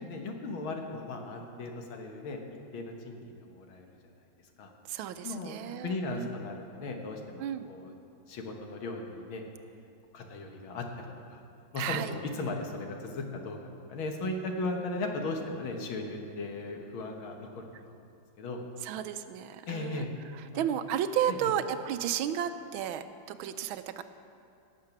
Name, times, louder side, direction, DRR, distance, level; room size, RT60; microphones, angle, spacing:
voice 1, 0.0-2.4 2.7-4.1 4.6-4.7 5.2-5.6 5.8-7.9 8.3-9.4 10.1-10.9 11.3-11.4 11.7-13.6 13.9-18.0 18.4-18.6 19.7-20.1 20.5-20.7 21.3-21.5, left 2 dB, 80° left, 2 dB, 2.1 m, -37 dB
voice 2, 4.9-6.3 7.4-7.7 11.8-12.1 18.8-20.0 20.5-24.0, right 10 dB, 85° right, 11 dB, 1.4 m, -33 dB
17.5 x 7.5 x 6.0 m, 2.5 s
omnidirectional pair, 2.2 m